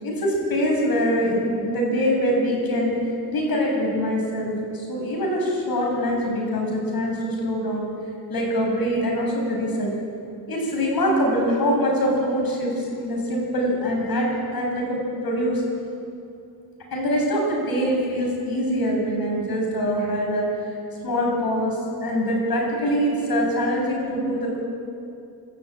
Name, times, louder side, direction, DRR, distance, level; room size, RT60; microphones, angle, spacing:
voice 1, 0.0-2.9 3.3-7.9 8.3-9.9 10.5-15.6 16.9-20.5 21.0-24.6, equal, 60° left, -1 dB, 7.9 m, -24 dB
26.0 x 14.5 x 9.0 m, 2.6 s
wide cardioid pair, 130°, 40 cm